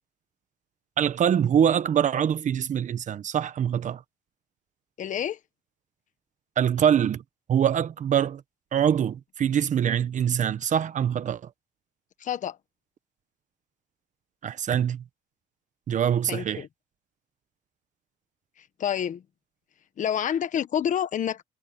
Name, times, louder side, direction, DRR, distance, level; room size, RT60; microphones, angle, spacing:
voice 1, 1.0-4.0 6.6-7.2 7.5-8.4 8.7-11.5 14.4-15.0 15.9-16.6, right 9 dB, 45° right, 1.2 m, -24 dB
voice 2, 5.0-5.4 12.2-12.6 16.3-16.7 18.6-19.2 20.0-21.4, left 9 dB, 50° left, 1.3 m, -28 dB
cardioid pair, 110°, 17 cm